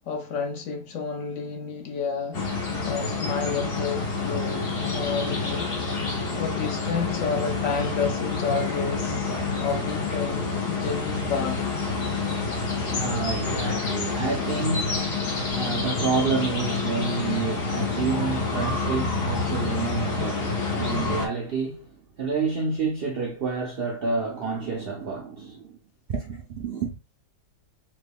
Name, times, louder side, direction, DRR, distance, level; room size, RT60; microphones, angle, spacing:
voice 1, 0.0-2.4 2.8-5.7 6.4-9.3 9.6-11.6, left 5 dB, 65° left, 0.9 m, -30 dB
sound 1, 2.3-21.3, left 4 dB, 85° left, 1.8 m, -28 dB
voice 2, 12.4-25.8 26.1-27.0, right 4 dB, 80° right, 0.5 m, -29 dB
3.6 x 2.2 x 3.4 m
omnidirectional pair, 1.7 m